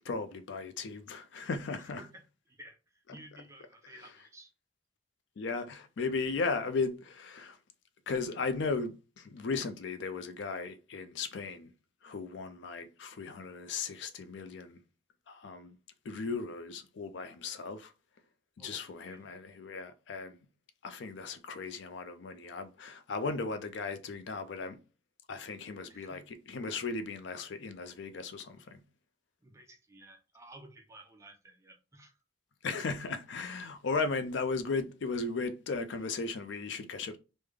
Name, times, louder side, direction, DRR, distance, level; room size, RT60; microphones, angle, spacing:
voice 1, 0.0-2.1 3.1-3.4 3.9-4.3 5.4-7.6 8.1-11.7 12.0-14.8 15.3-15.7 16.0-17.9 18.6-20.4 20.8-24.8 25.3-28.8 32.6-37.2, left 4 dB, 65° left, 0.4 m, -36 dB
voice 2, 2.0-4.5 18.6-19.3 25.9-26.3 29.4-32.2, right 1 dB, 15° right, 0.4 m, -54 dB
3.2 x 2.1 x 3.4 m
head